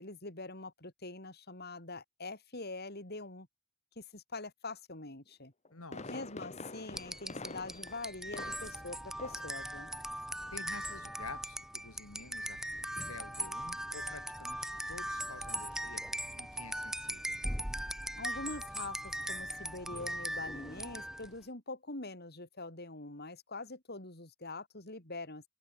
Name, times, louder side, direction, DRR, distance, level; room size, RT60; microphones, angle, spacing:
voice 1, 0.0-3.5 4.0-5.5 6.1-9.9 18.2-25.4, left 2 dB, 45° left, 4.2 m, -44 dB
Fireworks, 5.4-8.9 9.2-9.6 9.9-10.0, left 2 dB, 30° left, 1.9 m, -46 dB
voice 2, 5.7-6.3 10.5-17.4, left 3 dB, 80° left, 3.0 m, -50 dB
sound 1, 6.9-21.4, right 1 dB, ahead, 1.4 m, -40 dB
head